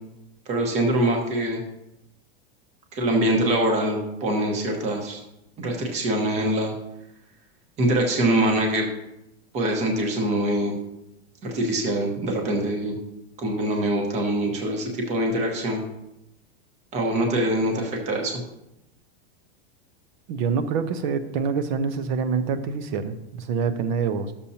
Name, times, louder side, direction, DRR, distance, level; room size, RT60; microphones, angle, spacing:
voice 1, 0.5-1.6 2.9-5.2 5.6-6.7 7.8-8.9 9.5-10.8 11.4-13.0 13.4-15.8 16.9-18.4, right 1 dB, 20° right, 1 dB, 1.1 m, -24 dB
voice 2, 20.3-24.3, right 6 dB, 50° right, 10 dB, 0.7 m, -26 dB
11.5 x 7.1 x 2.8 m, 0.87 s
supercardioid pair, 170°, 31 cm